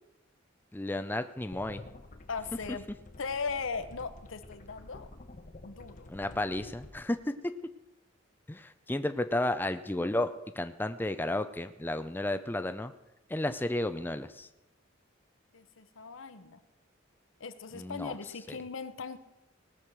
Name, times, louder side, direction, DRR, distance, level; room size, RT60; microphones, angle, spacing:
voice 1, 0.7-1.8 6.1-7.5 8.5-12.9 13.3-14.5 17.7-18.1 18.5-18.6, left 1 dB, 10° left, 9 dB, 0.4 m, -33 dB
sound 1, 1.5-6.9, left 2 dB, 40° left, 1.0 m, -50 dB
voice 2, 2.3-2.9 3.2-5.1 5.6-6.1 15.5-16.6 17.4-19.2, left 5 dB, 80° left, 12 dB, 0.8 m, -38 dB
19.0 x 6.4 x 6.0 m, 0.98 s
head